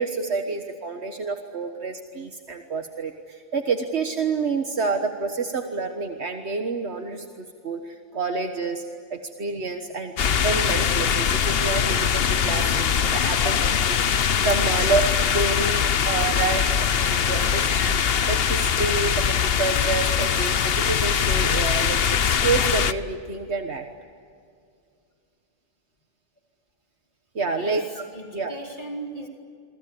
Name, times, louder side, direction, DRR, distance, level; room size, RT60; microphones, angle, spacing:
voice 1, 0.0-7.3 7.6-8.8 9.1-13.6 14.4-16.7 17.0-18.0 18.3-23.8 27.4-28.0 28.3-28.5, right 4 dB, 75° right, 5 dB, 1.7 m, -28 dB
sound 1, 10.2-22.9, left 7 dB, 65° left, 1.1 m, -22 dB
voice 2, 13.0-13.7 17.4-17.5 27.6-27.8 28.1-29.3, right 1 dB, 45° left, 1 dB, 3.7 m, -37 dB
28.0 x 24.5 x 8.6 m, 2.3 s
omnidirectional pair, 1.1 m